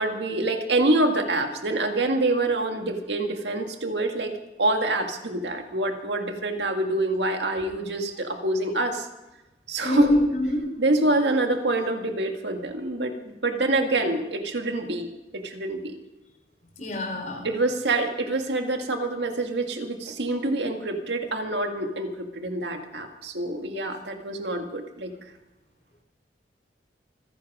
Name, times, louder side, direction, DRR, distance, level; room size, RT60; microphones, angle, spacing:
voice 1, 0.0-4.3 4.6-9.1 9.7-10.2 10.8-15.9 17.4-25.1, right 2 dB, 75° right, 4 dB, 1.9 m, -26 dB
voice 2, 9.8-10.6 16.8-17.5, left 1 dB, 45° left, 3 dB, 4.2 m, -24 dB
26.0 x 10.5 x 4.9 m, 1.0 s
head